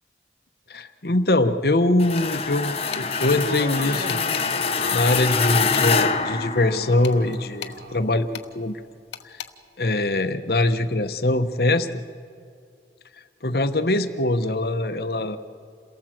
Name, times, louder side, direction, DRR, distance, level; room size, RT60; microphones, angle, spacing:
voice 1, 0.7-4.2 4.9-8.8 9.2-9.4 9.8-11.9 13.4-15.4, left 2 dB, 60° left, 9 dB, 1.0 m, -22 dB
sound 1, 2.0-7.2, left 5 dB, 35° left, 0.8 m, -25 dB
sound 2, 2.2-2.5 2.9-3.1 4.1-4.5 5.1-6.1 7.0-7.8 8.3-8.5 9.1-9.5, left 8 dB, 90° left, 1.1 m, -37 dB
Laughter, 3.2-5.4 5.8-8.2, right 2 dB, 65° right, 1.4 m, -38 dB
28.0 x 18.0 x 7.7 m, 2.3 s
head